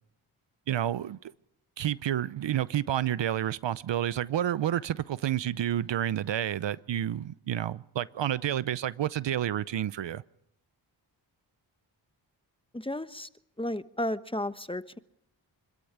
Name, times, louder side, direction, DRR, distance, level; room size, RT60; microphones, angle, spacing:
voice 1, 0.7-1.3 1.8-10.2, right 11 dB, 65° right, 0.7 m, -30 dB
voice 2, 12.7-13.3 13.6-15.0, left 1 dB, 10° left, 1.1 m, -33 dB
25.5 x 13.5 x 8.6 m
supercardioid pair, 40°, 47 cm